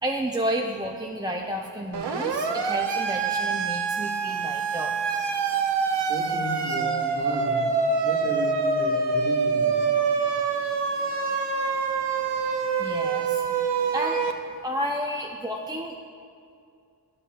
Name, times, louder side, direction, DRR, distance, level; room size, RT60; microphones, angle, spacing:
voice 1, 0.0-4.9 12.8-13.4 13.9-14.2 14.6-16.0, equal, 10° right, 1 dB, 0.3 m, -31 dB
Siren, 1.9-14.3, right 5 dB, 85° right, 0.5 m, -25 dB
voice 2, 6.1-7.7 8.0-9.8, right 1 dB, 25° right, -3 dB, 1.4 m, -34 dB
11.5 x 6.3 x 2.2 m, 2.4 s
wide cardioid pair, 65°, 40 cm